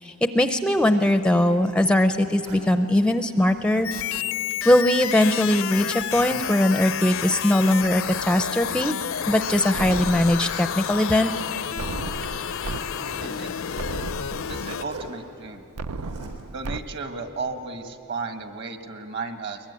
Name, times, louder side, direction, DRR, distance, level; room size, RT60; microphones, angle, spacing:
voice 1, 0.0-3.9 4.6-8.9 9.3-11.3, left 1 dB, 5° left, 8 dB, 0.5 m, -20 dB
Zipper (clothing), 1.0-2.7 3.4-4.4 4.8-7.0 7.6-7.9 9.4-10.0 10.2-10.4 11.1-11.2 11.6-12.1 12.6-13.4 14.7-15.1 15.8-16.5, right 2 dB, 75° right, 3.9 m, -44 dB
sound 1, 3.8-14.8, left 9 dB, 60° left, 0.6 m, -30 dB
sound 2, 9.8-10.8 11.8-12.8 13.3-13.4 13.8-14.8 15.8-16.8, right 3 dB, 90° right, 0.6 m, -34 dB
voice 2, 13.2-13.8 14.5-15.6 16.5-19.6, right 4 dB, 50° right, 6 dB, 1.7 m, -34 dB
22.0 x 22.0 x 9.9 m, 2.6 s
head